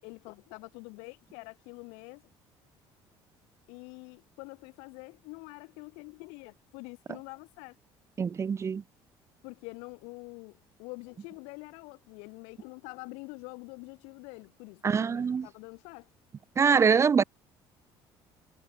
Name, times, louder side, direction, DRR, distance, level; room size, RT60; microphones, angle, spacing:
voice 1, 0.0-2.2 3.7-7.8 9.4-16.1, left 31 dB, 90° left, 7.4 m, -46 dB
voice 2, 8.2-8.8 14.8-15.5 16.6-17.2, right 6 dB, 30° right, 0.5 m, -24 dB
cardioid pair, 105°, 10 cm